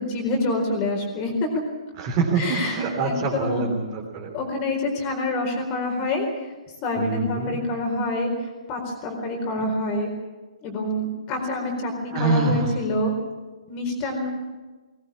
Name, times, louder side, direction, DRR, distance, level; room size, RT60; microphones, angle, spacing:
voice 1, 0.0-1.5 2.4-3.7 4.3-6.3 6.8-8.3 8.7-10.1 10.6-13.1 13.7-14.3, left 2 dB, 25° left, 2 dB, 4.4 m, -27 dB
voice 2, 2.0-4.3 7.0-7.6 12.1-12.7, right 3 dB, 25° right, -3 dB, 3.7 m, -25 dB
20.0 x 20.0 x 8.7 m, 1.2 s
figure-of-eight pair, 125°, 4 cm